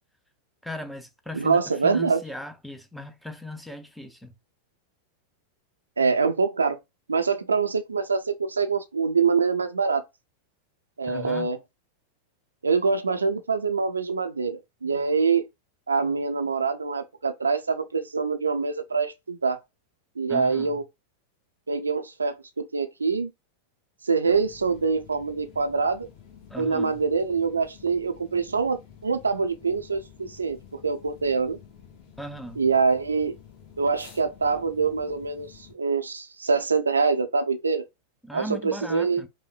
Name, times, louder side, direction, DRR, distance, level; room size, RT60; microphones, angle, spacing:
voice 1, 0.6-4.3 11.1-11.5 20.3-20.8 26.5-27.0 32.2-32.6 38.2-39.3, left 1 dB, ahead, 0.5 m, -38 dB
voice 2, 1.3-2.2 6.0-6.8 7.1-10.0 11.0-11.6 12.6-15.4 15.9-19.6 20.2-20.8 21.7-23.3 24.0-26.1 26.6-30.6 30.8-31.6 32.6-33.3 33.8-37.8 38.3-39.2, right 5 dB, 75° right, 0.4 m, -25 dB
sound 1, 24.3-35.7, left 8 dB, 40° left, 1.2 m, -50 dB
4.9 x 2.1 x 2.3 m
figure-of-eight pair, 90°, 0 cm